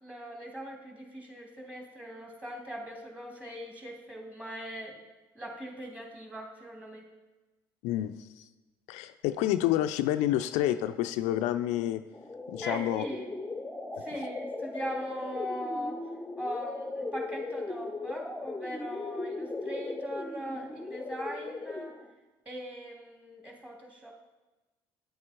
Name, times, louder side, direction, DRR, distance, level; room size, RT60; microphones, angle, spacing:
voice 1, 0.0-5.0 5.3-7.0 12.6-13.3 14.0-16.0 16.4-21.9 22.4-24.1, equal, 10° right, -1 dB, 3.1 m, -40 dB
voice 2, 7.8-8.5 8.9-12.0 12.5-13.0 14.1-14.2, left 13 dB, 70° left, 9 dB, 0.4 m, -29 dB
sound 1, 12.1-22.1, left 3 dB, 10° left, 0.9 m, -38 dB
9.5 x 8.6 x 4.5 m, 1.1 s
hypercardioid pair, 65°, 12 cm